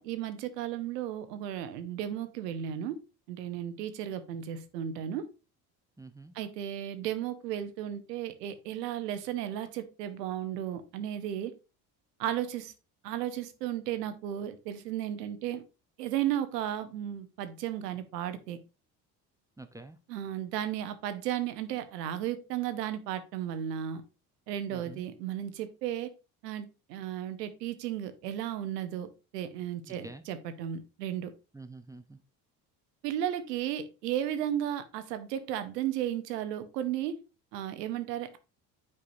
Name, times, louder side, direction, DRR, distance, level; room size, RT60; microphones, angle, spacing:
voice 1, 0.0-3.0 3.3-5.3 6.4-11.5 12.2-12.7 13.0-15.6 16.0-18.6 20.1-24.0 24.5-26.1 26.4-31.3 33.0-37.2 37.5-38.4, right 11 dB, 90° right, 0.8 m, -34 dB
voice 2, 6.0-6.3 19.6-20.0 24.7-25.0 29.9-30.2 31.5-32.2, right 2 dB, 5° right, 0.6 m, -47 dB
8.6 x 4.7 x 2.6 m
hypercardioid pair, 65°, 47 cm